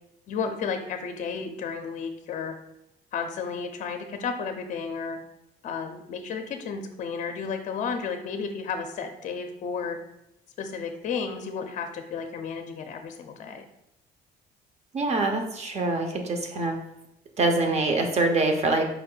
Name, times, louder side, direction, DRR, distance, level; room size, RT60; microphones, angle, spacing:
voice 1, 0.3-2.5 3.1-5.2 5.6-10.0 10.6-13.7, left 5 dB, 45° left, 6 dB, 0.5 m, -32 dB
voice 2, 14.9-16.8 17.4-18.8, right 2 dB, 40° right, 4 dB, 0.7 m, -24 dB
4.9 x 2.6 x 3.8 m, 0.83 s
cardioid pair, 110°, 17 cm